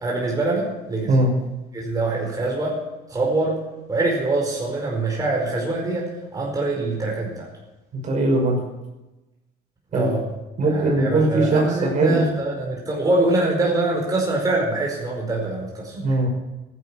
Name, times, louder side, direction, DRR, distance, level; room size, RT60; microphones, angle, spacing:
voice 1, 0.0-1.1 1.7-2.8 3.1-3.6 3.9-7.5 9.9-10.2 10.6-16.0, right 2 dB, 20° right, -2 dB, 4.8 m, -24 dB
voice 2, 7.9-8.6 9.9-10.1 10.6-12.3 15.9-16.3, right 2 dB, 50° right, 1 dB, 5.7 m, -20 dB
15.0 x 10.5 x 7.3 m, 1.0 s
cardioid pair, 110°, 17 cm